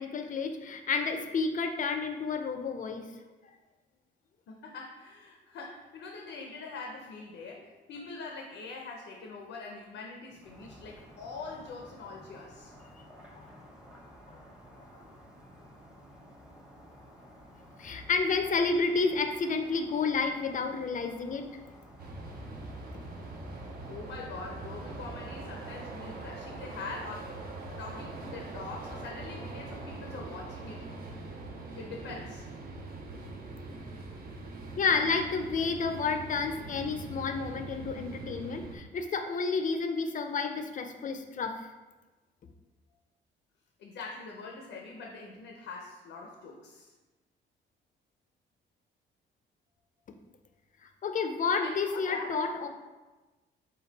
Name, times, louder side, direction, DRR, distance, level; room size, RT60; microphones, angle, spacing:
voice 1, 0.0-3.1 13.4-13.5 14.9-15.0 17.8-21.5 34.8-41.7 51.0-52.7, left 4 dB, 40° left, 6 dB, 0.5 m, -30 dB
voice 2, 4.5-12.7 23.9-27.4 27.7-30.9 31.8-32.5 43.8-46.9 51.6-52.3, left 3 dB, 80° left, 0 dB, 0.6 m, -43 dB
sound 1, 10.4-28.9, equal, 5° right, 0.8 m, -53 dB
sound 2, 22.0-38.8, right 2 dB, 50° right, 0.7 m, -42 dB
5.2 x 2.3 x 3.9 m, 1.2 s
cardioid pair, 90°, 20 cm